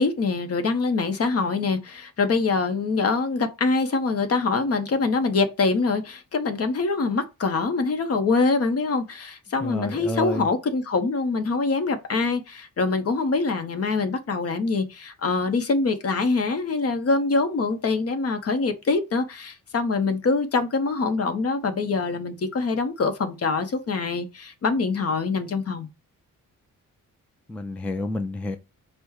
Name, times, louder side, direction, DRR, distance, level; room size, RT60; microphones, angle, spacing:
voice 1, 0.0-25.9, left 3 dB, 45° left, 0.9 m, -24 dB
voice 2, 9.6-10.5 27.5-28.6, left 2 dB, 5° left, 0.3 m, -29 dB
5.2 x 2.2 x 4.6 m
wide cardioid pair, 140°, 35 cm